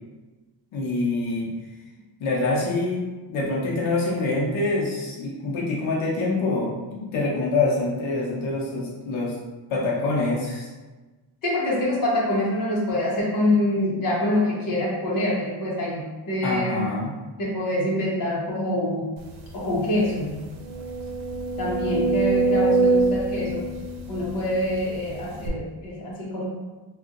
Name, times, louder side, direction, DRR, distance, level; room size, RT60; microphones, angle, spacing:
voice 1, 0.7-1.5 2.2-3.0 3.3-9.3 9.7-10.7 16.4-17.1, left 2 dB, 90° left, -4 dB, 0.9 m, -25 dB
voice 2, 11.4-16.8 17.4-19.1 19.5-20.4 21.6-23.7 24.1-26.5, left 1 dB, 45° left, -5 dB, 1.0 m, -25 dB
sound 1, 19.4-19.5 19.9-20.0 20.6-24.8 25.4-25.5, right 3 dB, 85° right, 0.7 m, -24 dB
2.6 x 2.4 x 3.8 m, 1.2 s
wide cardioid pair, 165°, 46 cm